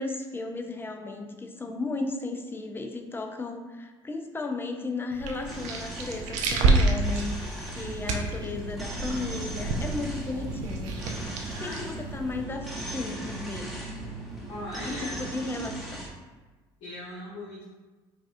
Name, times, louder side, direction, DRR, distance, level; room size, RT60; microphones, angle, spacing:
voice 1, 0.0-11.0 11.6-13.7 14.9-16.0, left 3 dB, 15° left, 5 dB, 0.5 m, -35 dB
sound 1, 5.1-12.4, right 3 dB, 70° right, 0.5 m, -29 dB
sound 2, 5.5-16.1, right 1 dB, ahead, 0.9 m, -40 dB
sound 3, 7.7-15.9, right 2 dB, 30° right, 1.0 m, -42 dB
voice 2, 11.6-11.9 14.2-15.2 16.8-17.6, left 1 dB, 70° left, -10 dB, 1.3 m, -39 dB
4.8 x 2.4 x 2.5 m, 1.2 s
hypercardioid pair, 70°, 13 cm